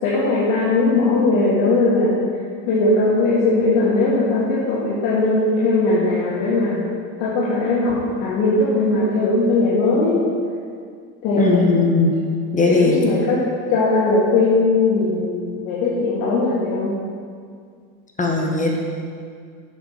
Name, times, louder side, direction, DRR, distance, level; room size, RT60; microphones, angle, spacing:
voice 1, 0.0-2.1 2.7-6.8 7.2-10.2 11.2-11.9 12.7-13.4 13.7-17.0, left 3 dB, 75° left, -8 dB, 2.4 m, -19 dB
voice 2, 11.4-12.1 12.5-13.0 18.2-18.8, left 3 dB, 20° left, 0 dB, 1.6 m, -18 dB
8.2 x 7.1 x 5.8 m, 2.2 s
supercardioid pair, 110°, 42 cm